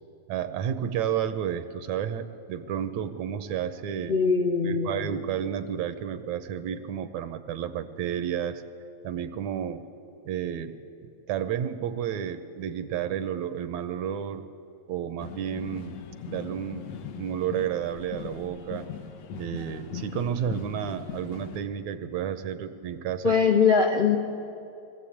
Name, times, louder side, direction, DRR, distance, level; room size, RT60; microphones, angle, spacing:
voice 1, 0.3-4.2 4.6-8.6 9.0-9.8 10.3-10.8 11.3-14.5 14.9-16.0 16.3-18.9 19.4-23.3, right 9 dB, 75° right, 10 dB, 2.1 m, -31 dB
voice 2, 4.1-5.1 23.2-24.2, left 5 dB, 45° left, 2 dB, 0.6 m, -22 dB
sound 1, 15.2-21.6, left 7 dB, 65° left, 2.1 m, -40 dB
22.5 x 15.0 x 8.5 m, 2.7 s
omnidirectional pair, 3.3 m